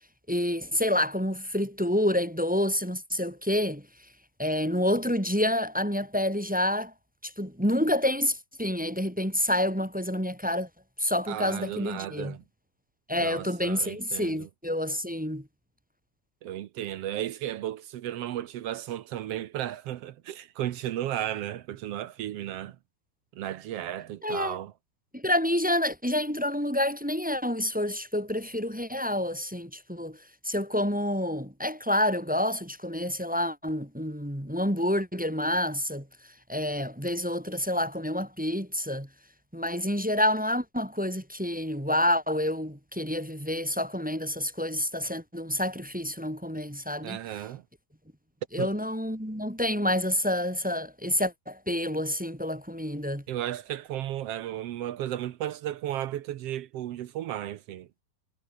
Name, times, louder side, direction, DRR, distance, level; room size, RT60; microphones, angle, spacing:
voice 1, 0.3-3.9 4.4-6.9 7.2-10.7 11.0-12.4 13.1-15.5 24.2-24.6 25.1-30.2 30.4-36.1 36.5-39.1 39.5-47.2 48.5-53.2, left 1 dB, 5° right, 1.8 m, -28 dB
voice 2, 11.3-12.4 13.2-14.5 16.4-22.8 23.3-24.7 47.0-47.6 48.6-48.7 53.3-57.9, right 12 dB, 70° right, 1.5 m, -34 dB
omnidirectional pair, 3.7 m